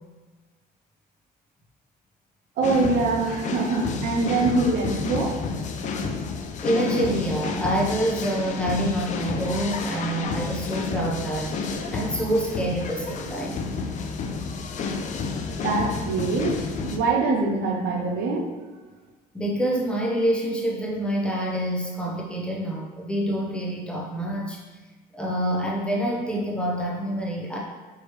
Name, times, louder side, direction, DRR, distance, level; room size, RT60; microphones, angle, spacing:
sound 1, 2.6-17.0, left 4 dB, 45° left, 0.4 m, -30 dB
voice 1, 2.6-5.4 15.6-16.6 16.8-18.5, right 3 dB, 75° right, 1 dB, 0.7 m, -24 dB
voice 2, 6.6-13.6 19.3-24.6 25.1-27.6, right 1 dB, 5° left, -3 dB, 0.8 m, -27 dB
4.6 x 3.1 x 3.2 m, 1.3 s
cardioid pair, 110°, 17 cm